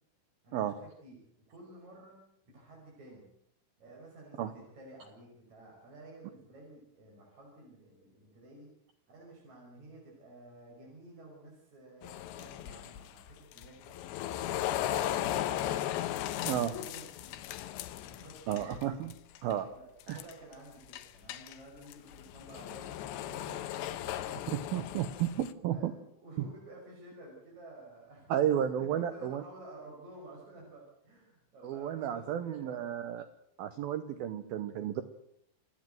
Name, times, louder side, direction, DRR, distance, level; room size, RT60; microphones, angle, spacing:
voice 1, 0.4-1.2 1.5-2.2 2.5-3.3 3.8-8.7 9.1-14.0 14.4-15.9 16.4-17.4 18.0-18.7 19.7-24.5 25.7-28.5 28.8-33.0, right 2 dB, 35° right, -3 dB, 6.6 m, -52 dB
sound 1, 12.0-18.8 19.1-19.5 20.0-20.5 20.9-25.5, left 12 dB, 75° left, 2.9 m, -37 dB
voice 2, 18.5-19.1 19.4-19.7 20.1-20.2 24.5-25.9 26.4-26.5 28.3-29.4 31.6-33.3 33.6-35.0, right 10 dB, 80° right, 10 dB, 2.1 m, -32 dB
28.5 x 9.9 x 9.2 m, 0.71 s
omnidirectional pair, 5.6 m